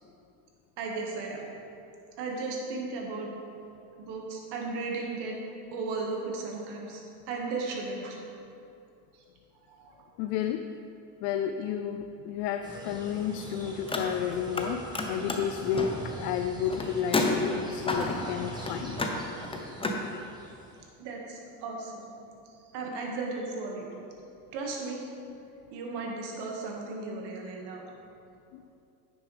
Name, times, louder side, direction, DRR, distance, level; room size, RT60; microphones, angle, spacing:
voice 1, 0.8-1.4 2.2-3.3 4.0-5.3 5.7-8.2 9.7-10.1 21.0-22.4 22.7-23.9 24.5-25.0 25.7-27.8, right 3 dB, 55° right, 0 dB, 1.8 m, -35 dB
voice 2, 10.2-10.7 11.2-19.0 28.5-28.6, left 8 dB, 65° left, 7 dB, 0.5 m, -31 dB
sound 1, 12.6-20.9, right 2 dB, 10° right, 1.3 m, -43 dB
Car, 13.8-14.7 14.9-20.0, left 2 dB, 10° left, 0.7 m, -32 dB
9.5 x 6.9 x 3.4 m, 2.6 s
supercardioid pair, 100°, 48 cm